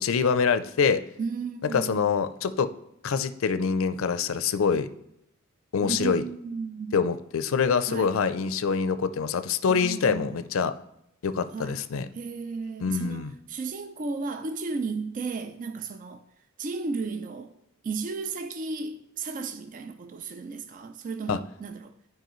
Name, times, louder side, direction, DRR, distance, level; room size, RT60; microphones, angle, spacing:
voice 1, 0.0-1.0 1.7-2.7 3.0-4.9 5.7-6.2 6.9-10.7 11.2-12.1 12.8-13.3 21.3-21.4, left 6 dB, 70° left, 0.4 m, -25 dB
voice 2, 1.2-2.1 5.8-7.0 7.9-8.1 9.7-10.4 11.5-11.8 12.1-16.2 16.6-17.5 17.8-21.9, right 4 dB, 40° right, 0.4 m, -34 dB
10.5 x 4.8 x 3.0 m
head